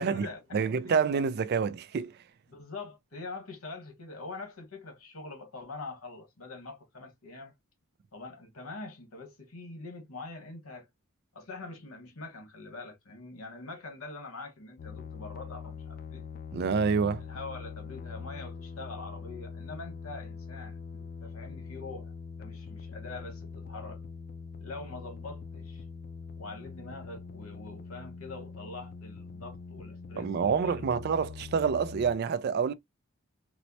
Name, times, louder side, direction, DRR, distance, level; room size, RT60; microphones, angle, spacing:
voice 1, 0.0-0.9 2.5-7.5 8.1-10.9 11.3-16.2 17.2-22.1 22.4-24.0 24.6-25.9 26.4-31.0, left 3 dB, 85° left, 1.3 m, -44 dB
voice 2, 0.5-2.1 16.5-17.2 30.2-32.7, right 6 dB, 50° right, 0.3 m, -27 dB
sound 1, 14.8-32.1, left 5 dB, 45° left, 0.4 m, -43 dB
4.3 x 2.1 x 2.7 m
head